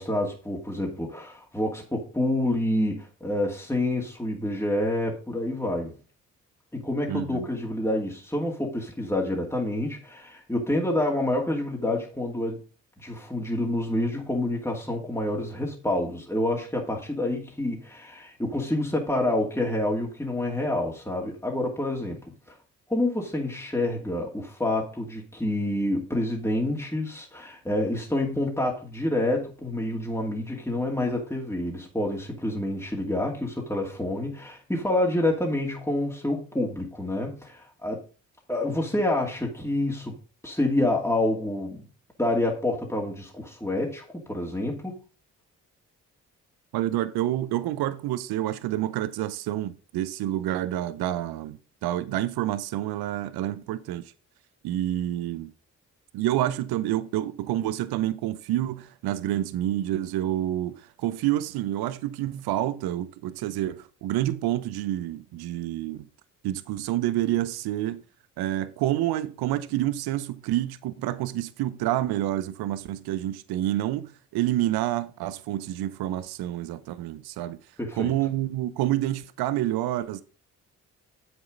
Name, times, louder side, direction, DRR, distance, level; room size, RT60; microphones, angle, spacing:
voice 1, 0.0-5.9 6.7-12.6 13.0-22.2 22.5-22.6 22.9-38.0 38.5-40.1 40.4-41.9 42.2-45.0 77.8-78.1, left 1 dB, 5° left, 2.5 m, -28 dB
voice 2, 7.1-7.5 46.7-54.1 54.6-55.5 56.1-66.1 66.4-68.0 68.4-77.6 77.9-80.2, right 13 dB, 75° right, 0.7 m, -28 dB
7.8 x 6.4 x 5.1 m
hypercardioid pair, 40°, 38 cm